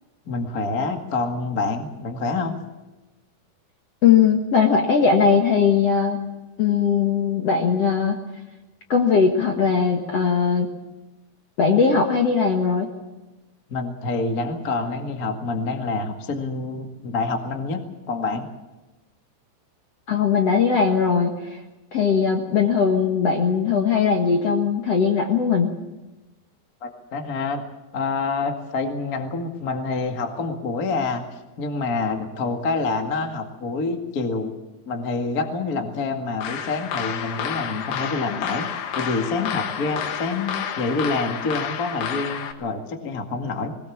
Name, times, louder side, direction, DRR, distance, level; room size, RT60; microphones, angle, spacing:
voice 1, 0.2-2.6 13.7-17.8 18.1-18.5 26.8-27.6 27.9-31.2 31.6-34.5 34.8-38.7 38.9-40.5 40.8-43.7, left 3 dB, 40° left, 4 dB, 1.3 m, -27 dB
voice 2, 4.0-6.2 6.6-8.2 8.9-10.7 11.6-12.9 20.1-21.6 21.9-25.7, left 6 dB, 55° left, 2 dB, 1.9 m, -19 dB
sound 1, 36.4-42.5, left 8 dB, 70° left, 3.3 m, -30 dB
20.5 x 20.0 x 7.2 m, 1.1 s
omnidirectional pair, 4.9 m